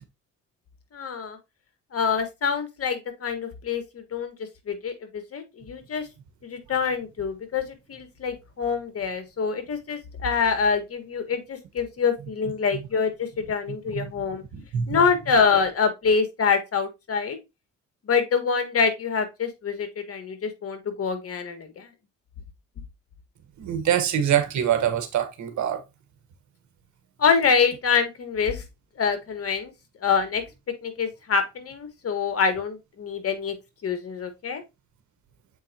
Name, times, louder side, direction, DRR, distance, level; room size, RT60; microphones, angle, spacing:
voice 1, 0.9-1.4 1.9-4.3 4.7-6.1 6.4-14.4 14.9-17.4 18.1-21.9 27.2-28.6 29.0-29.7 30.0-30.4 30.8-33.5 33.8-34.6, left 5 dB, 50° left, 1.6 m, -25 dB
voice 2, 14.5-15.0 23.6-25.8, right 9 dB, 70° right, 1.5 m, -24 dB
7.4 x 4.5 x 2.9 m
cardioid pair, 90°, 30 cm